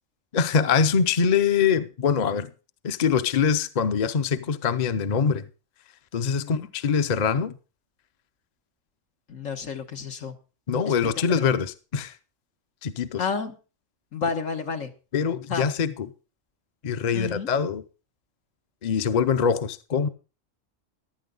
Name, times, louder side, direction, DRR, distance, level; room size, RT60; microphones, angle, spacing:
voice 1, 0.3-2.5 2.8-5.4 6.1-7.6 10.7-12.2 12.8-13.2 15.1-16.1 16.8-17.8 18.8-20.1, left 6 dB, 40° left, 0.7 m, -23 dB
voice 2, 9.3-10.4 10.9-11.1 13.2-13.5 14.1-14.9 15.5-15.6 17.1-17.5, left 5 dB, 80° left, 1.7 m, -30 dB
15.0 x 11.5 x 3.8 m
omnidirectional pair, 1.3 m